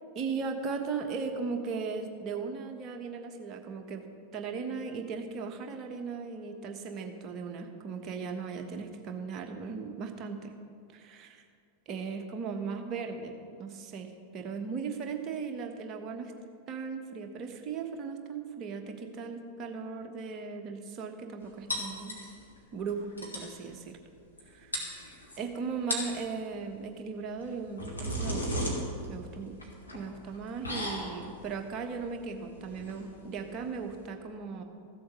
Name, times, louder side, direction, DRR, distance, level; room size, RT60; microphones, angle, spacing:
voice 1, 0.1-4.0 4.3-10.6 10.9-11.4 11.9-16.3 16.7-22.2 22.7-24.0 24.5-24.7 25.4-28.8 29.1-29.5 29.9-34.6, right 5 dB, 35° right, 4 dB, 1.4 m, -37 dB
sound 1, 21.7-22.6 22.9-23.0 23.2-23.5 24.4-24.5 24.7-25.4 25.8-26.2 27.4-34.0, equal, 85° left, 2.7 m, -36 dB
15.0 x 7.9 x 6.3 m, 2.3 s
figure-of-eight pair, 90°, 0 cm